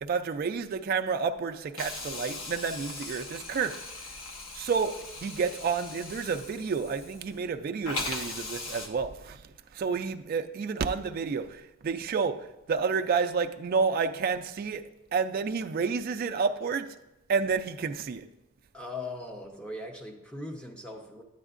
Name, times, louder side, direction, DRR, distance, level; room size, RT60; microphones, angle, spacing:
voice 1, 0.0-3.8 4.5-9.4 9.7-16.9 17.3-18.3, right 5 dB, 45° right, 0.3 m, -30 dB
Hiss, 1.8-7.5 7.8-8.9, left 2 dB, 85° left, 1.1 m, -39 dB
voice 2, 18.7-21.2, left 2 dB, 5° left, 0.7 m, -39 dB
9.8 x 7.9 x 2.5 m
head